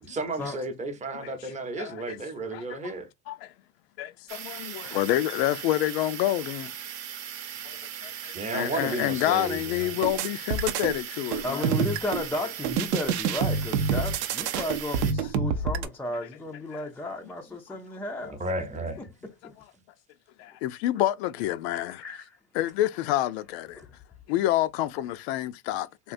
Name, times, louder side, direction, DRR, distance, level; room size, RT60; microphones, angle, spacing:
voice 1, 0.0-3.1 8.3-9.9 18.4-19.0, right 2 dB, 20° right, 0.7 m, -33 dB
voice 2, 1.8-2.2 2.5-2.9 3.3-3.5 4.0-6.7 7.7-11.7 16.7-16.9 20.4-22.0 22.5-23.8 24.3-26.1, left 14 dB, 75° left, 0.5 m, -28 dB
sound 1, 4.3-15.1, right 9 dB, 55° right, 0.8 m, -39 dB
sound 2, 10.0-11.0 11.3-12.3 12.6-15.9, right 6 dB, 85° right, 0.6 m, -27 dB
voice 3, 11.4-18.4 19.0-19.1 19.4-19.5 22.0-22.2 23.8-23.9, left 2 dB, 5° left, 0.4 m, -34 dB
3.6 x 2.4 x 2.5 m
supercardioid pair, 125°, 32 cm